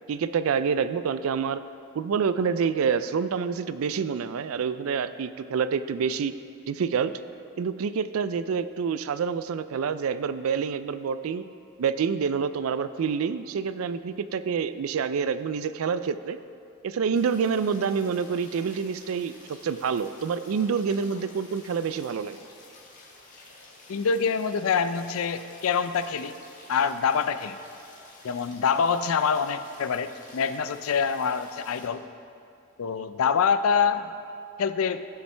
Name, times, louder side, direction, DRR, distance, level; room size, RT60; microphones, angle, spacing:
voice 1, 0.1-1.6 1.9-6.3 6.7-7.1 7.6-11.4 11.8-16.4 16.8-22.4, right 6 dB, 80° right, 13 dB, 0.4 m, -27 dB
sound 1, 17.1-31.9, left 2 dB, 40° left, 1.4 m, -50 dB
voice 2, 23.9-26.3 26.7-27.6 28.2-32.1 32.8-34.1 34.6-35.1, left 6 dB, 85° left, 12 dB, 0.4 m, -25 dB
16.0 x 5.7 x 3.3 m, 2.5 s
head